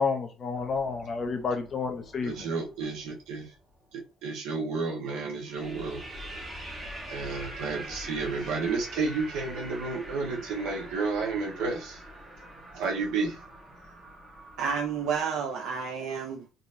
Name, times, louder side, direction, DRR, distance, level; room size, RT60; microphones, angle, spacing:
voice 1, 0.0-2.5, left 5 dB, 25° left, 0.6 m, -30 dB
sound 1, 0.5-3.4 5.4-15.2, right 1 dB, 15° right, 1.1 m, -44 dB
voice 2, 2.3-3.5 3.9-6.0 7.1-12.0 12.7-13.4, right 4 dB, 70° right, 1.3 m, -31 dB
voice 3, 14.6-16.5, right 6 dB, 55° right, 0.5 m, -30 dB
4.0 x 2.9 x 2.6 m
cardioid pair, 165°, 0 cm